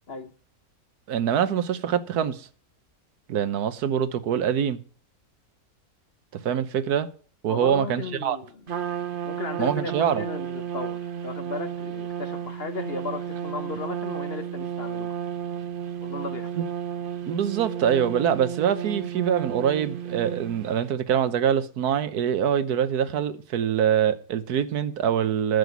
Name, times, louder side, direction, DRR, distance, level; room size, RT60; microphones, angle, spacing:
voice 1, 1.1-2.5 3.3-4.8 6.3-7.1 7.4-8.4 9.6-10.2 16.6-16.7 17.3-25.6, right 8 dB, 85° right, 1.4 m, -24 dB
voice 2, 7.5-8.5 9.2-15.1 16.0-16.5, left 4 dB, 45° left, 1.0 m, -35 dB
Trumpet, 8.7-20.8, right 9 dB, 45° right, 0.7 m, -33 dB
10.0 x 7.8 x 8.2 m
omnidirectional pair, 1.6 m